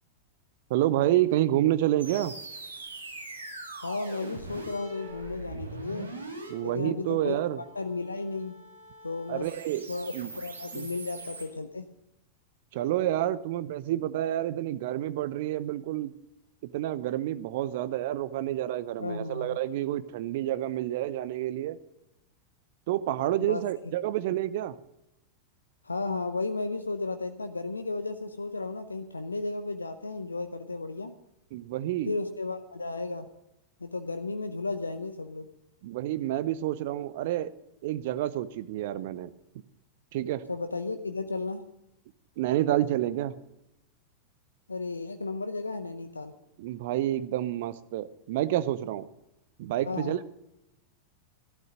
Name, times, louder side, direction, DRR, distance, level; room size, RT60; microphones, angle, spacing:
voice 1, 0.7-2.3 6.5-7.6 9.3-9.9 10.1-10.3 10.7-10.9 12.7-16.1 16.6-21.8 22.9-24.7 31.5-32.1 35.8-37.5 37.8-39.3 40.1-40.5 42.4-43.4 46.6-49.1 49.6-50.3, right 13 dB, 50° right, 15 dB, 0.7 m, -29 dB
sound 1, 2.0-11.5, right 2 dB, 75° right, 2.5 m, -43 dB
voice 2, 3.8-6.1 6.6-7.4 7.8-8.6 9.0-9.5 9.9-11.9 19.0-19.6 23.4-23.6 25.8-31.1 32.1-33.3 33.8-35.5 40.5-41.6 44.7-46.3 49.9-50.2, left 3 dB, 80° left, 9 dB, 0.7 m, -34 dB
14.5 x 12.0 x 6.4 m, 0.86 s
figure-of-eight pair, 90°, 0 cm